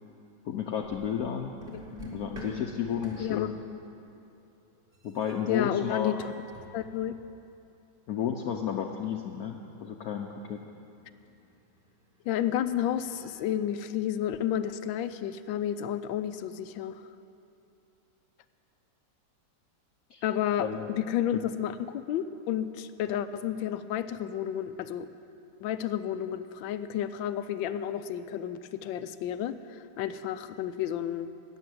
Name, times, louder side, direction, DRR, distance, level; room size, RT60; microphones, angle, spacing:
voice 1, 0.4-1.6 2.1-3.6 5.0-6.1 8.1-10.6 20.1-20.2 20.6-20.9, left 8 dB, 65° left, 2 dB, 1.0 m, -32 dB
sound 1, 0.8-1.3 1.6-4.3 4.8-7.3 8.3-13.3, left 1 dB, 30° right, 2.2 m, -48 dB
voice 2, 3.2-3.5 5.5-6.3 6.7-7.1 12.3-17.0 20.2-25.1 25.6-31.3, left 10 dB, 90° left, 12 dB, 1.3 m, -31 dB
12.5 x 9.1 x 7.9 m, 2.6 s
omnidirectional pair, 2.0 m